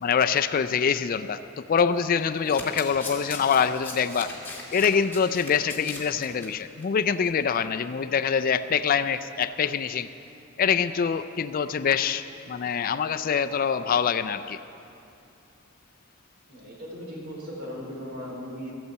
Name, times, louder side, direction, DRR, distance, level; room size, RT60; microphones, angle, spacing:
voice 1, 0.0-4.3 4.7-10.1 10.6-14.6, left 6 dB, 45° left, 12 dB, 0.4 m, -25 dB
Domestic sounds home sounds, 2.2-6.5 6.8-7.0 7.3-7.4, left 3 dB, 10° left, 2.2 m, -39 dB
voice 2, 16.5-18.7, equal, 55° right, -3 dB, 3.9 m, -38 dB
14.0 x 8.3 x 8.0 m, 2.7 s
head